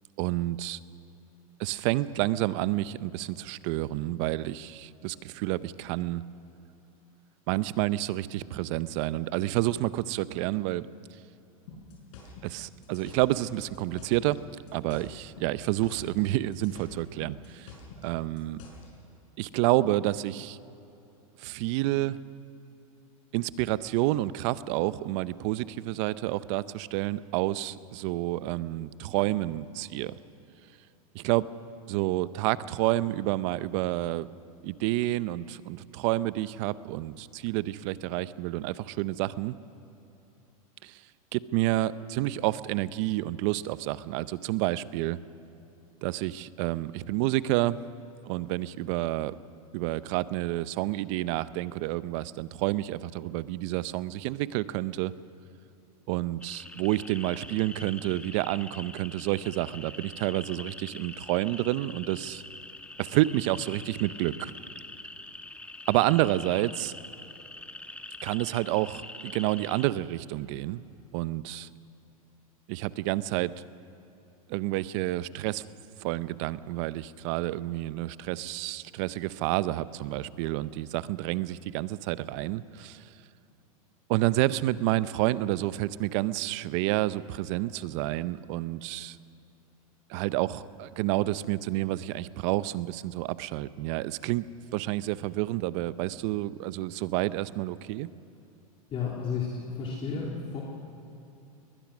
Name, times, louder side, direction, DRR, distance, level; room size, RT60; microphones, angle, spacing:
voice 1, 0.2-0.8 1.6-6.2 7.5-10.9 12.4-14.4 14.7-17.7 18.0-18.6 19.4-20.6 21.4-22.2 23.3-30.1 31.1-31.5 31.9-34.3 34.6-39.5 40.8-41.0 41.3-45.2 46.0-47.8 48.2-49.3 49.7-55.1 56.1-62.4 63.0-64.5 65.9-66.9 68.2-70.8 71.1-71.7 72.7-73.5 74.5-75.6 76.0-83.1 84.1-89.2 90.1-94.4 94.7-98.1, right 16 dB, 55° right, 16 dB, 0.7 m, -29 dB
sound 1, 11.7-14.4 14.7-16.3 16.5-18.9, left 3 dB, 65° left, 6.7 m, -47 dB
sound 2, 56.4-69.9, left 2 dB, 5° left, 1.2 m, -44 dB
voice 2, 98.9-100.6, left 5 dB, 30° left, -3 dB, 3.2 m, -32 dB
21.5 x 20.5 x 6.2 m, 3.0 s
hypercardioid pair, 120°, 18 cm